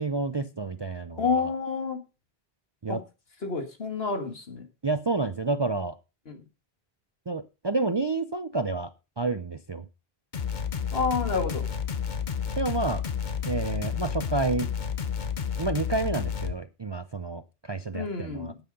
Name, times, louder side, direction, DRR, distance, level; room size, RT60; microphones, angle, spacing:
voice 1, 0.0-1.4 2.8-3.0 4.8-6.0 7.3-8.9 9.2-9.8 12.6-13.0 13.5-14.7 15.6-17.4 17.7-18.5, right 3 dB, 35° right, 0.5 m, -29 dB
voice 2, 1.2-2.0 2.9-3.0 3.4-4.6 6.3-6.4 10.9-11.6 17.9-18.6, left 4 dB, 70° left, 2.0 m, -29 dB
sound 1, 10.3-16.5, left 7 dB, 50° left, 1.0 m, -31 dB
9.3 x 9.0 x 5.3 m
omnidirectional pair, 1.1 m